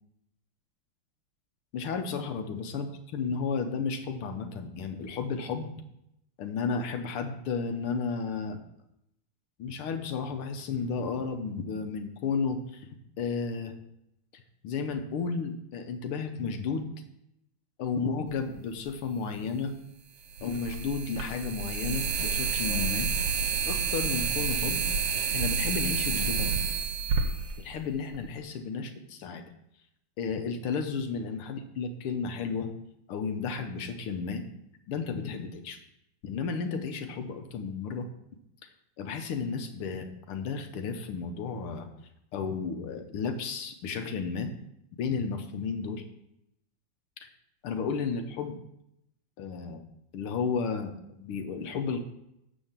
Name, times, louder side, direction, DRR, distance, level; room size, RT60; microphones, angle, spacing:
voice 1, 1.7-2.9 3.1-5.7 6.4-8.6 9.6-12.9 13.2-13.7 14.3-16.9 17.8-19.8 20.4-23.1 23.7-24.9 25.3-26.6 27.6-28.9 29.2-29.4 30.2-32.7 33.1-34.5 34.9-35.8 36.2-38.1 39.0-41.9 42.3-44.5 45.0-46.0 47.2-47.3 47.6-48.6 49.4-49.8 50.1-52.0, left 5 dB, 80° left, 7 dB, 1.9 m, -33 dB
sound 1, 18.9-19.0 20.3-28.3, right 6 dB, 55° right, 1.5 m, -29 dB
12.0 x 4.2 x 7.4 m, 0.81 s
omnidirectional pair, 2.4 m